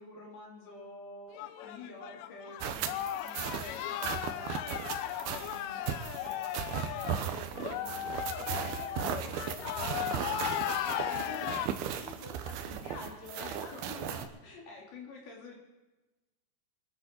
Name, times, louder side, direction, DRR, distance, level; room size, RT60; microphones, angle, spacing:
voice 1, 0.0-8.6 11.1-12.1 13.2-15.6, left 2 dB, 65° left, -2 dB, 4.6 m, -50 dB
sound 1, 1.3-11.7, left 12 dB, 90° left, 2.9 m, -36 dB
sound 2, 2.6-14.3, right 9 dB, 75° right, 2.6 m, -37 dB
voice 2, 8.3-8.9 9.2-11.4 11.9-14.2, left 3 dB, 15° left, -3 dB, 2.7 m, -48 dB
26.0 x 10.5 x 4.5 m, 1.1 s
omnidirectional pair, 4.9 m